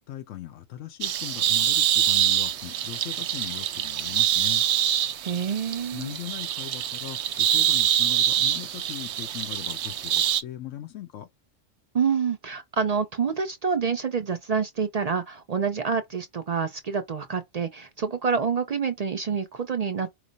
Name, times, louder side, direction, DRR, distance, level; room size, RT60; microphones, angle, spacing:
voice 1, 0.0-4.6 5.9-11.3, left 12 dB, 85° left, 1.0 m, -39 dB
sound 1, 1.0-10.4, right 10 dB, 70° right, 0.8 m, -25 dB
voice 2, 5.2-6.2 11.9-20.1, right 6 dB, 55° right, 0.4 m, -27 dB
4.9 x 2.0 x 3.9 m
omnidirectional pair, 1.3 m